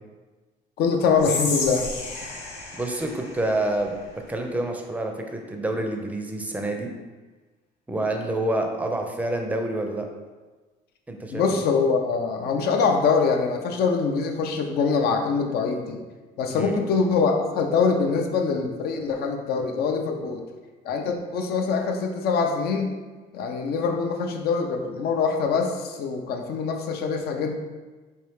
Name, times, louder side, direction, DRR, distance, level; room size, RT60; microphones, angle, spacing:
voice 1, 0.8-1.9 11.3-16.0 16.4-20.4 20.8-22.9 23.3-27.6, left 5 dB, 70° left, 3 dB, 0.6 m, -24 dB
Whispering, 1.2-4.4, left 3 dB, 85° left, 0.9 m, -32 dB
voice 2, 2.8-3.9 4.3-6.9 7.9-10.1 11.1-11.6 16.5-16.8, right 1 dB, 10° right, 3 dB, 0.5 m, -27 dB
4.3 x 2.7 x 3.4 m, 1.3 s
cardioid pair, 110°, 17 cm